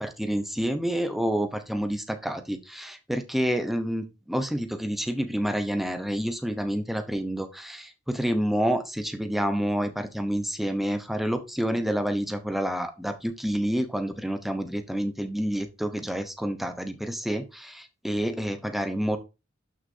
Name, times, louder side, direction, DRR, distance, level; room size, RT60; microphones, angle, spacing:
voice 1, 0.0-19.2, equal, ahead, 8 dB, 0.9 m, -28 dB
11.5 x 6.5 x 2.8 m, 0.29 s
head